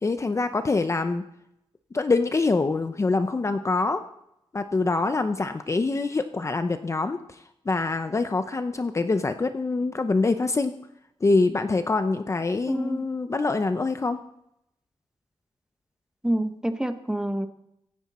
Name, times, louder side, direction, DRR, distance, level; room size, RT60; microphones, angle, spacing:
voice 1, 0.0-1.2 1.9-4.0 4.5-7.2 7.7-10.7 11.2-14.2, left 3 dB, 30° left, 9 dB, 0.6 m, -25 dB
voice 2, 12.7-13.0 16.2-17.5, right 1 dB, 5° right, 8 dB, 1.0 m, -27 dB
24.0 x 9.7 x 4.3 m, 0.79 s
wide cardioid pair, 145°, 10 cm